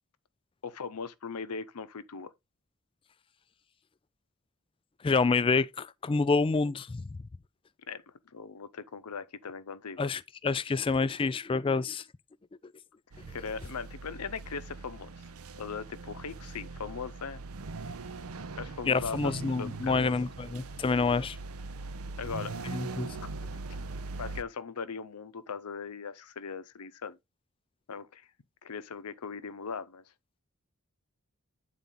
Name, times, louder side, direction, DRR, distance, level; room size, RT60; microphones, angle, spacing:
voice 1, 0.6-2.3 7.9-8.0 8.3-10.1 13.3-15.2 15.5-17.4 18.6-20.1 22.2-22.5 23.8-23.9 24.2-27.2 27.9-28.3 28.6-30.0, left 5 dB, 90° left, 0.7 m, -39 dB
voice 2, 5.0-7.0 10.0-12.0 18.9-21.4 22.6-23.2, left 4 dB, 25° left, 0.3 m, -28 dB
sound 1, 13.1-24.4, right 3 dB, 70° right, 0.6 m, -41 dB
9.1 x 4.1 x 3.8 m
head